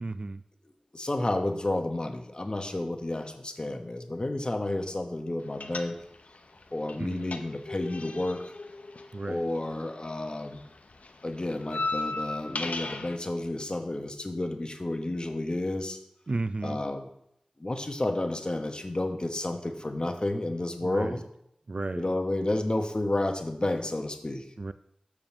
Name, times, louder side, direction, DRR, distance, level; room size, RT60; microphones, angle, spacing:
voice 1, 0.0-0.4 7.0-7.3 9.1-9.5 16.3-16.8 20.8-21.2 21.7-22.1 24.6-24.7, right 2 dB, 55° right, 13 dB, 0.3 m, -33 dB
voice 2, 0.9-6.0 6.7-8.5 9.2-10.6 11.2-16.0 16.6-17.1 17.6-21.2 22.0-24.5, left 1 dB, 40° left, 5 dB, 1.0 m, -31 dB
sound 1, 5.6-6.4 6.6-10.0 10.3-13.2, left 3 dB, 90° left, 0.6 m, -36 dB
7.2 x 4.9 x 6.1 m, 0.76 s
wide cardioid pair, 60°, 2 cm